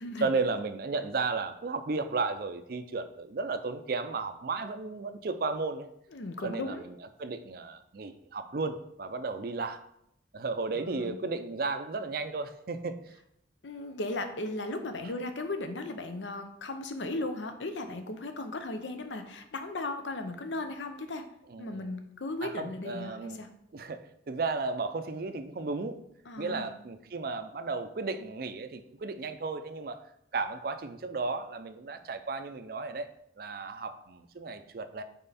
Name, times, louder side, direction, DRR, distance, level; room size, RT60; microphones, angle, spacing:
voice 1, 0.2-5.9 6.4-6.9 7.2-9.8 10.3-12.9 21.5-21.9 22.4-23.4 23.7-26.0 26.4-30.0 30.3-33.1 33.4-35.0, right 3 dB, 55° right, 10 dB, 0.5 m, -34 dB
voice 2, 6.1-6.9 10.7-11.2 13.6-21.3 21.6-23.5 26.3-26.7, left 2 dB, 85° left, 8 dB, 0.7 m, -36 dB
5.5 x 4.4 x 4.1 m, 0.76 s
head